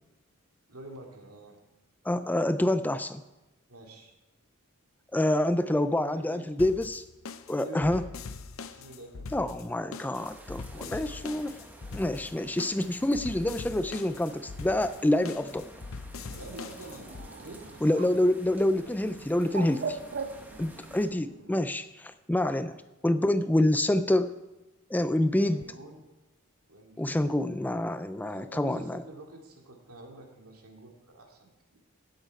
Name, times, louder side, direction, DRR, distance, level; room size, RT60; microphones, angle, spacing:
voice 1, 0.7-1.6 3.7-4.1 5.6-6.6 7.6-8.0 8.7-9.4 10.7-11.3 16.3-18.2 25.5-26.0 26.7-27.1 28.2-31.8, right 1 dB, 90° right, 1 dB, 2.3 m, -47 dB
voice 2, 2.1-3.2 5.1-7.0 7.5-8.0 9.3-11.6 11.9-15.7 17.8-20.0 20.6-24.3 24.9-25.7 27.0-29.0, left 1 dB, 10° left, 12 dB, 0.3 m, -27 dB
sound 1, 6.6-17.3, left 4 dB, 65° left, 0.6 m, -42 dB
sound 2, 10.1-21.1, right 1 dB, 10° right, 1.0 m, -51 dB
Bird, 16.2-21.7, right 4 dB, 50° right, 0.8 m, -41 dB
16.5 x 8.1 x 4.7 m, 1.0 s
head